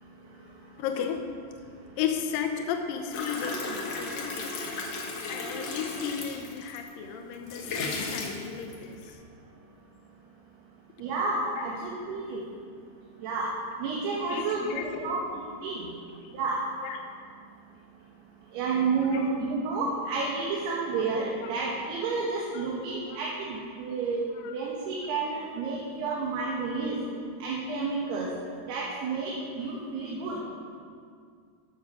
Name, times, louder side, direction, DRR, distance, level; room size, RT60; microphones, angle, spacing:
voice 1, 0.8-1.3 2.0-4.5 5.3-9.0 11.6-11.7 14.3-15.2 16.2-16.3 16.8-17.0 19.1-19.3 21.4-21.5 22.5-22.6 23.1-23.2 24.4-24.5, left 8 dB, 80° left, 4 dB, 2.1 m, -34 dB
sound 1, 3.1-6.9 7.3-9.1, left 3 dB, 60° left, 2.4 m, -35 dB
voice 2, 11.0-12.4 13.2-13.5 13.8-15.9 16.3-16.6 18.5-24.2 24.5-27.0 27.4-28.3 28.6-30.4, right 4 dB, 75° right, -4 dB, 3.3 m, -30 dB
15.0 x 6.1 x 6.4 m, 2.2 s
omnidirectional pair, 4.9 m